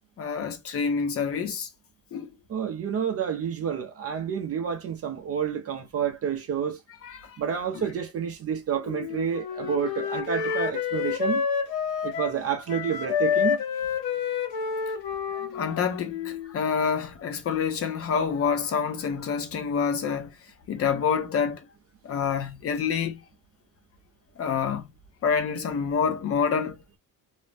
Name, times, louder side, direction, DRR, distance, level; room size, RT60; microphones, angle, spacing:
voice 1, 0.2-1.7 2.1-2.3 7.0-7.4 10.4-10.6 15.3-20.3 20.7-21.6 22.0-23.2 24.4-24.8 25.2-26.8, left 6 dB, 40° left, 0.7 m, -27 dB
voice 2, 2.5-6.8 7.4-11.4 12.0-13.6, right 8 dB, 40° right, 0.5 m, -29 dB
Wind instrument woodwind instrument, 8.9-12.4 12.7-16.5, left 7 dB, 80° left, 0.9 m, -29 dB
2.6 x 2.0 x 3.2 m
cardioid pair, 165°, 35 cm